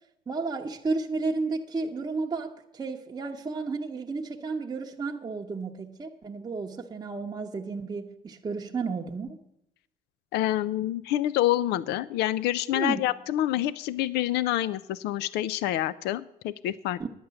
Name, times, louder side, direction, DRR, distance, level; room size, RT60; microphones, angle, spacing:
voice 1, 0.3-9.4 12.7-13.0 17.0-17.1, right 4 dB, 25° right, 0 dB, 0.8 m, -32 dB
voice 2, 10.3-17.1, left 14 dB, 80° left, 18 dB, 0.4 m, -27 dB
10.0 x 8.8 x 6.9 m, 0.79 s
cardioid pair, 110°, 17 cm